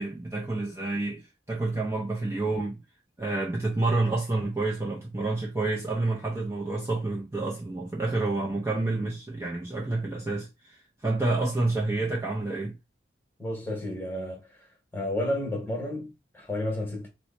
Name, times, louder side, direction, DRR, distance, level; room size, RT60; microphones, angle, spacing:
voice 1, 0.0-2.8 3.2-12.8, right 2 dB, 15° right, 0.5 m, -29 dB
voice 2, 13.4-14.5 14.9-17.1, left 1 dB, 10° left, 1.0 m, -31 dB
2.9 x 2.1 x 4.1 m
head